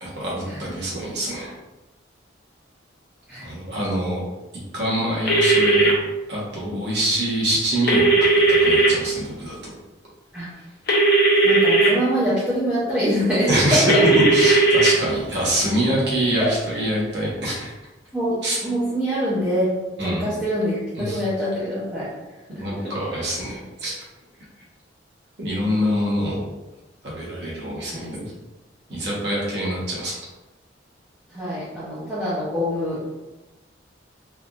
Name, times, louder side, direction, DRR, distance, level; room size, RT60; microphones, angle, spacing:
voice 1, 0.0-1.5 3.4-4.2 4.7-5.9 6.3-8.3 8.6-9.5 13.5-13.8 14.3-17.7 18.4-18.6 20.0-20.2 21.0-21.2 22.6-23.9 25.4-26.4 27.0-28.3 28.9-30.1, right 1 dB, 55° right, -6 dB, 1.1 m, -25 dB
sound 1, 5.3-5.9 7.9-8.9 10.9-11.9 13.9-14.9, right 2 dB, 50° left, 0.6 m, -16 dB
voice 2, 11.4-13.8 16.4-16.5 18.1-18.3 18.6-19.7 20.0-22.1 22.5-22.6 27.9-28.0 31.3-33.1, equal, 5° right, -11 dB, 0.6 m, -24 dB
3.4 x 2.4 x 2.4 m, 1.1 s
head